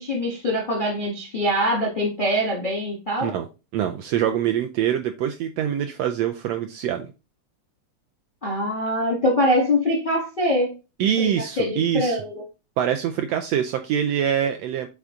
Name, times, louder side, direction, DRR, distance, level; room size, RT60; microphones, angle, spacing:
voice 1, 0.0-3.3 8.4-10.8 11.2-11.3 11.6-12.4, equal, 45° left, 0.6 m, -23 dB
voice 2, 3.7-7.1 11.0-12.2 12.8-14.9, right 9 dB, 80° right, 1.5 m, -24 dB
8.0 x 3.6 x 3.6 m
omnidirectional pair, 3.4 m